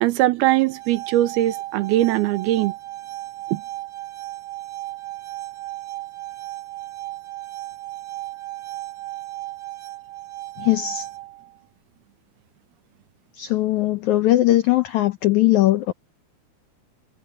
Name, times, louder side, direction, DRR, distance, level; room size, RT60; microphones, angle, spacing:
voice 1, 0.0-2.7 3.5-3.6, right 15 dB, 85° right, 2.9 m, -20 dB
sound 1, 0.6-11.6, right 17 dB, 45° right, 1.4 m, -35 dB
voice 2, 10.6-11.1 13.3-15.9, left 15 dB, 85° left, 1.6 m, -19 dB
omnidirectional pair, 4.4 m